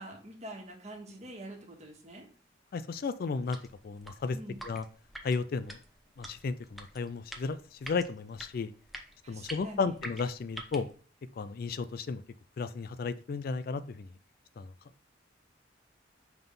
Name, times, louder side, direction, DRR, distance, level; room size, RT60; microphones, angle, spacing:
voice 1, 0.0-2.2 4.3-4.6 9.2-9.9, right 1 dB, 35° right, 0 dB, 1.6 m, -45 dB
voice 2, 2.7-3.6 3.8-4.4 4.6-4.8 5.2-5.8 6.2-8.7 9.3-10.9 11.4-12.2 12.6-14.1 14.6-14.7, left 4 dB, 50° left, 13 dB, 0.3 m, -34 dB
sound 1, 3.4-10.9, equal, ahead, 0.7 m, -47 dB
5.8 x 3.6 x 5.3 m, 0.42 s
head